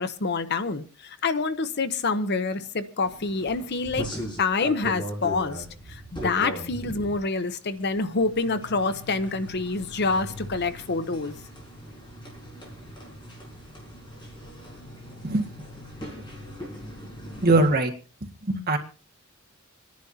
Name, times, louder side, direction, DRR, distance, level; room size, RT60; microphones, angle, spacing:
voice 1, 0.0-4.1 4.4-11.3, left 3 dB, 55° left, 0.8 m, -27 dB
sound 1, 3.0-17.7, equal, 25° left, 4.9 m, -39 dB
voice 2, 17.4-17.9 18.5-18.8, right 2 dB, 50° right, 1.8 m, -20 dB
26.0 x 10.5 x 2.8 m
head